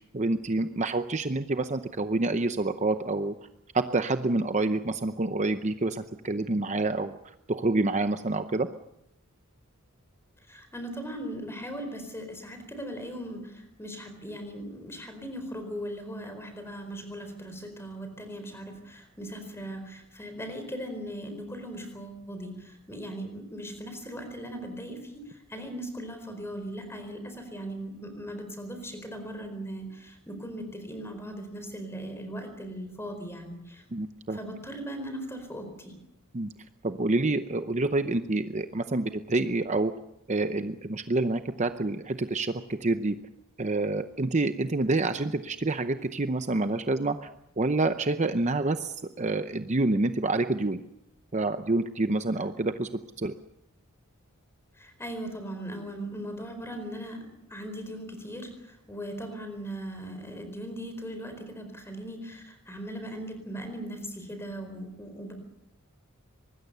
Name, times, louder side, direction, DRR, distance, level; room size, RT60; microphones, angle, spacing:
voice 1, 0.1-3.3 3.7-7.2 7.5-8.7 33.9-34.4 36.3-36.5 36.8-39.9 40.3-43.2 43.6-47.3 47.6-50.8 51.3-52.9 53.2-53.3, right 2 dB, 30° right, 9 dB, 0.7 m, -27 dB
voice 2, 10.5-33.8 34.3-35.9 54.7-57.2 57.5-65.3, equal, 10° left, 7 dB, 4.4 m, -39 dB
24.0 x 20.5 x 6.8 m, 0.85 s
head